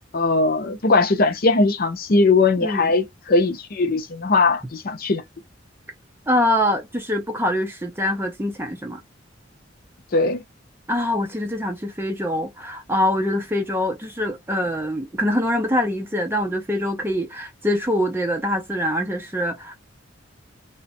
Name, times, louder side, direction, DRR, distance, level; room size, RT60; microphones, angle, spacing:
voice 1, 0.1-5.2 10.1-10.4, left 3 dB, 50° left, 0.6 m, -19 dB
voice 2, 6.3-9.0 10.9-19.8, left 1 dB, 10° right, 0.6 m, -24 dB
2.6 x 2.2 x 4.0 m
head